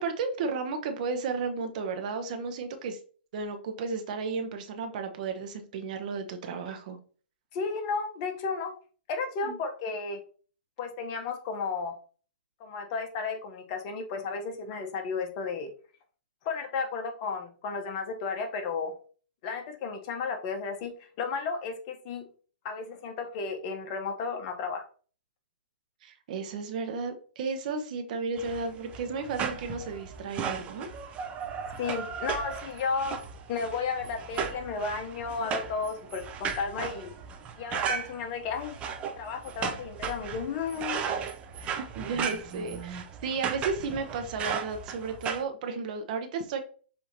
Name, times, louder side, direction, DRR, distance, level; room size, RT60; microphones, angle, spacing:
voice 1, 0.0-3.0 3.3-7.0 9.4-9.6 26.0-30.9 41.5-46.6, right 4 dB, 45° right, 6 dB, 0.8 m, -33 dB
voice 2, 7.5-8.7 9.1-10.2 10.8-11.9 12.6-15.7 16.4-18.9 19.4-22.2 22.6-24.8 31.8-33.2 33.5-37.1 37.6-38.8 39.2-41.1, left 5 dB, 35° left, 5 dB, 0.9 m, -33 dB
sound 1, 28.4-45.4, right 7 dB, 20° right, 0.5 m, -36 dB
6.8 x 2.8 x 2.8 m, 0.41 s
figure-of-eight pair, 125°, 6 cm